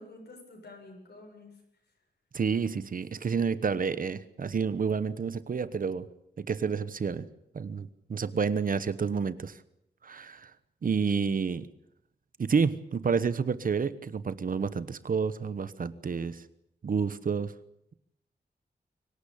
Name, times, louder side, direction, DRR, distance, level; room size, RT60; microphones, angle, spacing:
voice 1, 0.0-1.6, left 2 dB, 70° left, 2 dB, 7.8 m, -49 dB
voice 2, 2.3-6.1 6.4-7.3 7.5-9.6 10.0-10.5 10.8-11.7 12.4-16.4 16.8-17.5, right 5 dB, 55° right, 15 dB, 1.1 m, -29 dB
23.5 x 18.5 x 8.5 m, 0.78 s
wide cardioid pair, 180°, 17 cm